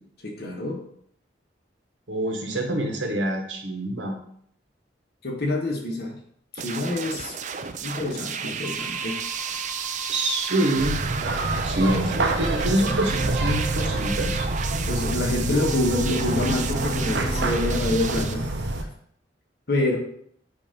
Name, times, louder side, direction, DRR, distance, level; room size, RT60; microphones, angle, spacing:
voice 1, 0.2-0.8 5.2-6.2 6.6-7.3 7.8-9.2 11.8-12.1 14.9-18.4 19.7-20.0, left 2 dB, 60° left, -1 dB, 1.6 m, -26 dB
voice 2, 2.1-4.2 10.1-11.0 11.6-14.5, right 1 dB, 85° right, 2 dB, 1.4 m, -26 dB
sound 1, 6.6-18.3, right 6 dB, 40° right, 0.5 m, -33 dB
sound 2, 8.6-10.9 12.1-14.5 15.7-17.5, right 3 dB, 10° left, 1.6 m, -37 dB
sound 3, 10.8-18.8, right 2 dB, 70° right, 0.9 m, -27 dB
8.4 x 2.9 x 5.2 m, 0.65 s
head